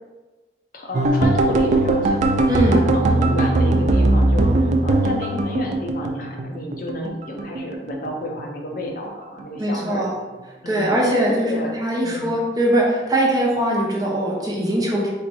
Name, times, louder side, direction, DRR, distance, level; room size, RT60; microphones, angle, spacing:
voice 1, 0.7-10.1 10.6-11.7 12.0-12.4, left 1 dB, 50° left, 1 dB, 0.6 m, -31 dB
sound 1, 0.9-7.1 7.4-8.4 8.7-9.1 9.4-9.6, right 2 dB, 40° right, 0.3 m, -19 dB
voice 2, 2.5-2.8 9.6-10.2 10.7-15.1, right 1 dB, 20° right, -3 dB, 0.8 m, -21 dB
4.2 x 2.5 x 4.3 m, 1.2 s
head